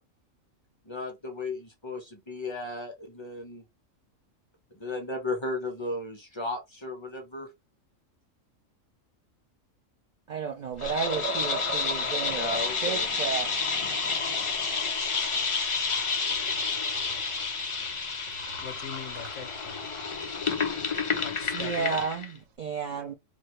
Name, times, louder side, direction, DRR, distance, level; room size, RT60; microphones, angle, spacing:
voice 1, 0.8-3.6 4.7-7.5 12.3-13.1, left 2 dB, 25° left, 0.7 m, -35 dB
voice 2, 10.3-13.5 21.5-23.1, right 6 dB, 75° right, 0.4 m, -32 dB
sound 1, 10.8-22.3, left 5 dB, 50° left, 0.3 m, -30 dB
Liquid, 10.8-22.0, right 6 dB, 90° right, 1.1 m, -44 dB
voice 3, 18.6-19.8 21.2-22.1, left 7 dB, 65° left, 0.8 m, -41 dB
2.7 x 2.6 x 3.1 m
omnidirectional pair, 1.4 m